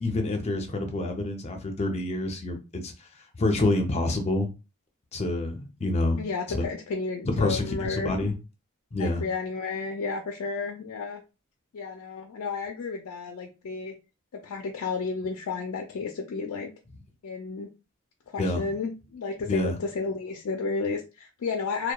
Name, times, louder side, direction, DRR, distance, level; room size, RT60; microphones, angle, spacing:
voice 1, 0.0-2.6 2.8-2.9 3.4-4.5 5.1-6.2 6.5-6.6 7.4-8.3 8.9-9.2 18.4-18.6 19.5-19.7, left 2 dB, 30° left, 0.5 m, -27 dB
voice 2, 6.2-8.1 9.0-11.2 11.7-13.9 14.3-16.7 17.2-17.7 18.3-21.9, left 4 dB, 85° left, 0.4 m, -32 dB
2.7 x 2.1 x 2.2 m
head